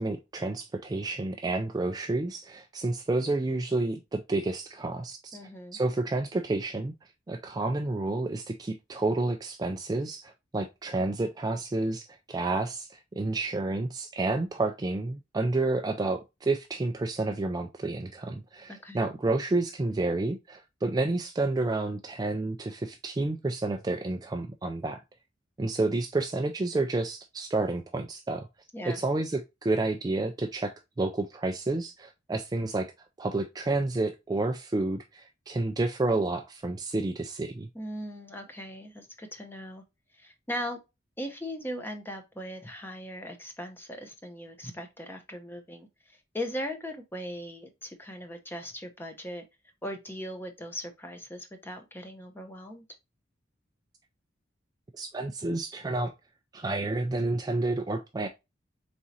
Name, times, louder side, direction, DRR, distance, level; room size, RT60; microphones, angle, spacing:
voice 1, 0.0-5.4 5.7-6.9 7.3-25.0 25.6-28.5 28.9-32.9 33.2-37.7 54.9-56.1 56.5-58.3, right 2 dB, 20° right, 0.3 m, -30 dB
voice 2, 5.3-5.8 18.7-19.0 28.7-29.0 37.7-39.8 40.2-40.8 41.2-49.4 49.8-52.8, equal, 10° left, 0.7 m, -39 dB
4.1 x 3.7 x 2.7 m
head